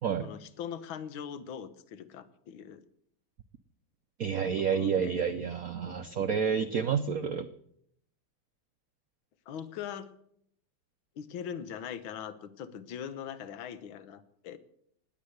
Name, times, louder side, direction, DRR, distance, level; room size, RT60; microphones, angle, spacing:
voice 1, 0.2-2.8 4.7-5.1 9.5-10.1 11.1-14.6, left 8 dB, 70° left, 14 dB, 1.8 m, -41 dB
voice 2, 4.2-7.5, right 7 dB, 70° right, 9 dB, 0.8 m, -29 dB
19.5 x 8.7 x 8.0 m, 0.70 s
omnidirectional pair, 2.4 m